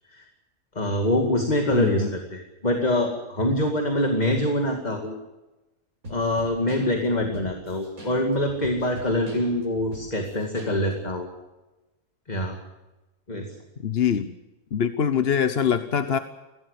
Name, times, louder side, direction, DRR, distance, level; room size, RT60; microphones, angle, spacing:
voice 1, 0.7-5.1 6.1-11.3 12.3-12.6 13.3-13.5, left 1 dB, 25° left, 4 dB, 2.4 m, -25 dB
voice 2, 1.7-2.1 7.3-7.4 13.8-14.3 14.7-16.2, left 8 dB, 45° left, 11 dB, 1.0 m, -23 dB
sound 1, 6.0-11.2, equal, 60° right, 6.7 m, -41 dB
22.0 x 17.0 x 8.2 m, 1.1 s
omnidirectional pair, 1.6 m